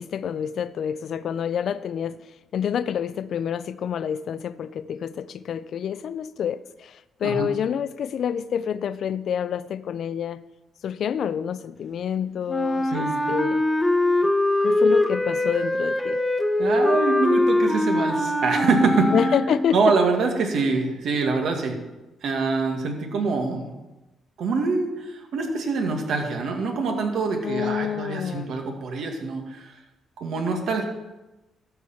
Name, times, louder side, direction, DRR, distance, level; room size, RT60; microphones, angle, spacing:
voice 1, 0.0-2.2 2.5-10.4 10.8-13.6 14.6-16.2 19.1-19.9 27.4-28.5, left 8 dB, 65° left, 0.4 m, -28 dB
Wind instrument woodwind instrument, 12.5-19.8, left 1 dB, 10° left, 1.0 m, -22 dB
voice 2, 12.9-13.3 16.6-19.1 19.7-21.8 22.2-23.7 24.4-29.7 30.2-30.8, right 4 dB, 70° right, 1.8 m, -25 dB
13.0 x 4.7 x 5.7 m
cardioid pair, 90°, 0 cm